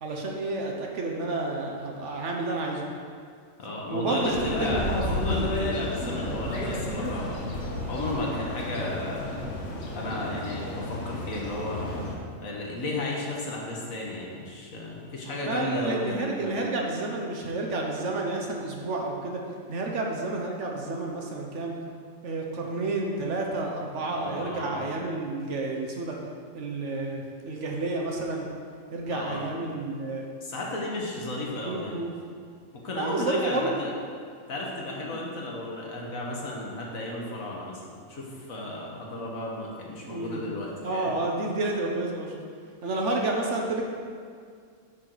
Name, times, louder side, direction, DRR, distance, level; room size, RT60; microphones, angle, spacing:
voice 1, 0.0-2.9 3.9-4.8 15.4-19.4 19.7-21.8 22.2-26.2 26.5-28.5 28.9-30.3 31.6-32.1 33.0-33.7 40.1-40.4 40.8-42.4 42.8-43.8, right 2 dB, 65° right, 0 dB, 1.2 m, -30 dB
voice 2, 3.6-7.4 7.9-9.4 9.9-11.8 12.4-16.6 24.1-24.9 29.1-29.4 30.4-32.0 32.8-33.9 34.5-41.1, left 2 dB, 85° left, -2 dB, 1.7 m, -34 dB
sound 1, 4.2-12.1, left 1 dB, 60° left, 1.4 m, -31 dB
10.5 x 4.7 x 4.0 m, 2.2 s
omnidirectional pair, 1.4 m